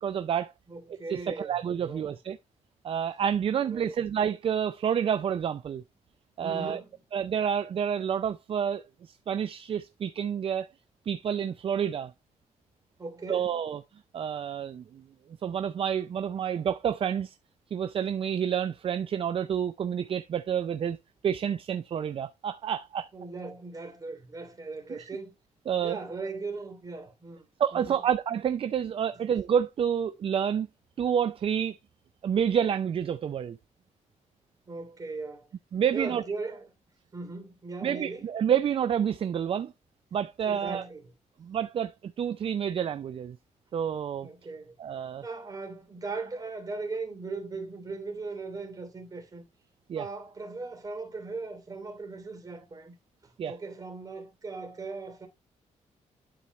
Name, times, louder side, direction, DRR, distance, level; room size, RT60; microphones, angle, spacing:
voice 1, 0.0-0.5 1.1-2.4 2.8-5.8 6.4-6.8 7.1-10.7 11.1-12.1 13.3-13.8 14.1-15.0 15.4-17.4 17.7-21.0 21.2-23.1 24.9-25.1 25.7-26.0 27.6-30.7 31.0-31.8 32.2-33.6 35.7-36.2 37.8-39.7 40.1-40.8 41.4-43.4 43.7-44.3 44.8-45.2 49.9-50.1 53.4-53.5, right 8 dB, 45° right, 0.5 m, -29 dB
voice 2, 0.7-2.1 3.6-3.9 6.4-7.0 13.0-13.5 23.1-25.3 25.8-27.4 27.7-28.0 29.1-29.2 34.7-35.5 35.9-36.7 37.1-38.3 40.4-41.1 44.2-44.8 45.2-49.4 49.9-53.0 53.2-55.3, right 3 dB, 30° right, 3.0 m, -38 dB
11.0 x 4.6 x 3.0 m
cardioid pair, 120°, 13 cm